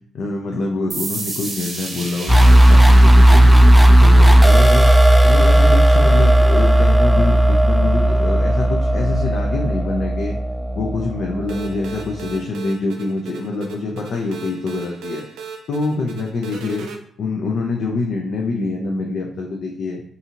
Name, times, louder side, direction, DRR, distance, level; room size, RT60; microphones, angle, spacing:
voice 1, 0.1-4.9 5.2-10.4 10.7-15.2 15.7-16.9 17.2-20.0, left 3 dB, 70° left, 0 dB, 0.4 m, -25 dB
sound 1, 0.9-8.3, right 2 dB, 45° right, 0.8 m, -34 dB
sound 2, 2.3-11.9, right 1 dB, 10° right, 0.3 m, -13 dB
sound 3, 11.5-17.0, right 6 dB, 85° right, 0.4 m, -36 dB
2.7 x 2.4 x 2.8 m, 0.63 s
supercardioid pair, 60°, 0 cm